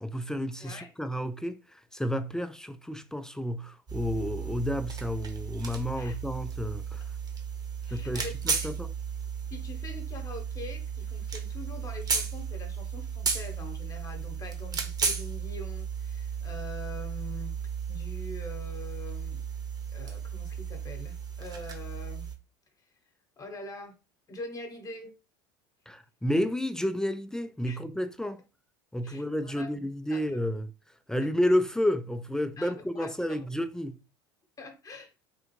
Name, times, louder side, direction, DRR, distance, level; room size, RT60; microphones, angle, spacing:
voice 1, 0.0-7.0 7.9-8.9 25.9-28.4 28.9-30.7 31.1-34.0, equal, 5° left, 0.3 m, -31 dB
sound 1, 3.9-22.4, right 6 dB, 30° right, 0.9 m, -34 dB
voice 2, 7.8-8.7 9.5-17.6 17.9-19.4 19.9-22.3 23.4-23.9 24.3-25.1 27.7-27.8 29.0-29.7 30.1-30.2 32.6-33.4 34.6-35.1, left 2 dB, 25° left, 1.0 m, -44 dB
3.5 x 2.4 x 3.0 m
hypercardioid pair, 85°, 13 cm